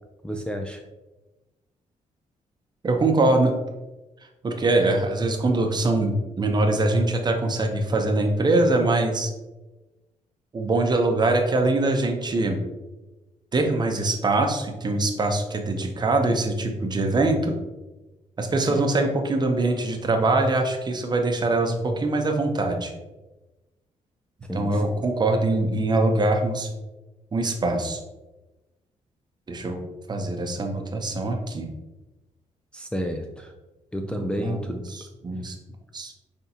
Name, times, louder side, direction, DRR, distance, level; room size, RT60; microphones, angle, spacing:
voice 1, 0.2-0.8 18.7-18.8 24.5-25.1 32.7-33.5 33.9-34.8, equal, 5° left, 2 dB, 0.4 m, -31 dB
voice 2, 2.8-3.5 4.4-9.3 10.5-12.6 13.5-17.5 18.4-22.9 24.5-26.7 27.3-28.0 29.5-29.8 30.1-31.7 34.0-35.5 35.9-36.1, right 2 dB, 30° right, 4 dB, 0.7 m, -23 dB
5.3 x 3.5 x 2.9 m, 1.1 s
cardioid pair, 100°, 13 cm